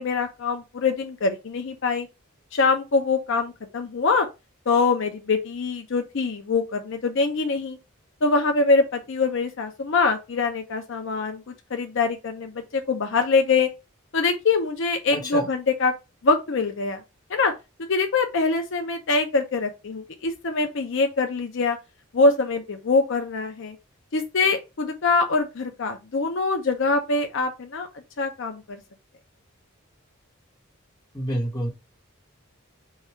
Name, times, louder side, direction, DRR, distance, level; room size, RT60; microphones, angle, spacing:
voice 1, 0.0-2.1 2.5-4.3 4.7-7.8 8.2-13.7 14.1-15.9 16.2-17.0 17.3-17.5 17.9-21.8 22.1-23.8 24.1-27.9 28.2-28.8, left 4 dB, 60° left, 0.6 m, -24 dB
voice 2, 15.1-15.5 31.1-31.7, equal, 20° left, 1.1 m, -28 dB
4.7 x 2.3 x 4.2 m
head